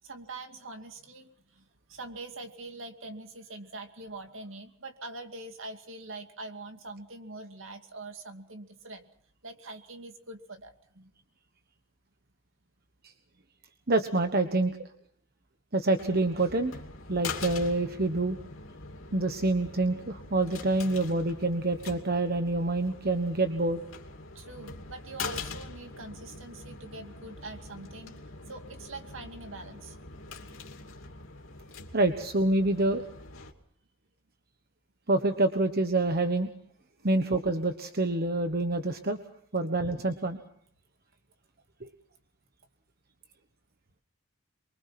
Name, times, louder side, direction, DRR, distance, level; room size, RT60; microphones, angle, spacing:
voice 1, 0.0-9.1 9.4-11.1 24.3-28.2 28.5-30.0 37.0-37.1, right 2 dB, 65° right, 6 dB, 2.4 m, -44 dB
voice 2, 13.9-14.8 15.7-16.8 17.1-18.4 19.1-23.8 31.9-33.0 35.1-36.5 37.0-39.2 39.5-40.4 41.8-41.9, right 2 dB, 45° right, 7 dB, 1.3 m, -27 dB
sound 1, 16.0-33.5, left 4 dB, 70° left, 2.7 m, -43 dB
24.0 x 23.5 x 6.0 m, 0.65 s
head